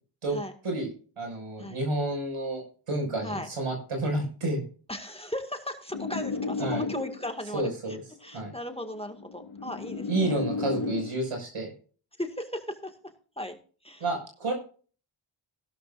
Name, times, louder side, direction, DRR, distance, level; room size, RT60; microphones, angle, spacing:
voice 1, 1.2-2.6 2.9-4.6 6.6-6.8 7.5-8.0 8.3-8.5 10.1-11.7 14.0-14.5, right 2 dB, 90° right, 2 dB, 6.2 m, -30 dB
voice 2, 4.9-10.4 12.2-13.0 13.4-13.5 13.8-14.0, left 1 dB, 10° left, 5 dB, 2.0 m, -37 dB
sound 1, 5.9-7.4 8.5-11.2, left 4 dB, 70° left, 2.4 m, -33 dB
16.0 x 13.0 x 2.6 m, 0.39 s
wide cardioid pair, 70°, 50 cm